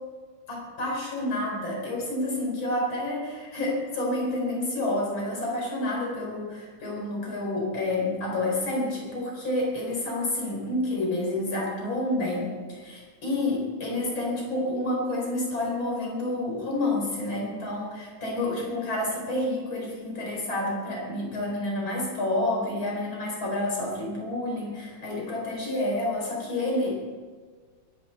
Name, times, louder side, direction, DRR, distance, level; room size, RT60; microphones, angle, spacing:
voice 1, 0.5-27.0, left 1 dB, 80° left, -2 dB, 5.5 m, -29 dB
22.5 x 11.0 x 4.5 m, 1.5 s
omnidirectional pair, 2.2 m